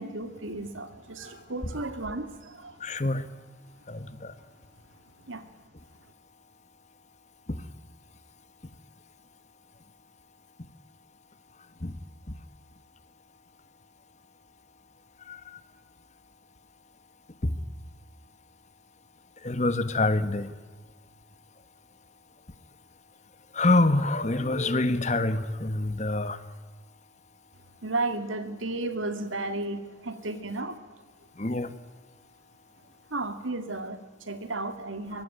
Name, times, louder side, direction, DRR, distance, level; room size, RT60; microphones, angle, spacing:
voice 1, 0.0-2.8 5.3-5.4 27.8-30.8 33.1-35.2, right 2 dB, 90° right, 2.4 m, -33 dB
voice 2, 2.8-3.2 3.9-4.3 7.5-7.6 11.8-12.0 12.3-12.4 15.3-15.6 17.4-17.5 19.4-20.5 23.5-26.4 31.4-31.7, left 2 dB, 35° left, 1.3 m, -26 dB
24.5 x 21.5 x 9.2 m
head